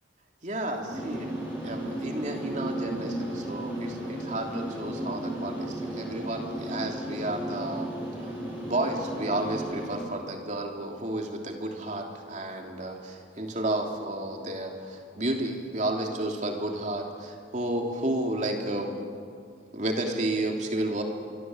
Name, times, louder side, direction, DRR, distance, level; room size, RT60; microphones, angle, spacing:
voice 1, 0.4-1.3 1.6-7.9 8.2-18.9 19.7-21.0, right 1 dB, 40° right, 2 dB, 3.1 m, -32 dB
sound 1, 0.9-10.0, right 1 dB, 10° right, 6.9 m, -34 dB
27.0 x 24.5 x 7.9 m, 2.2 s
head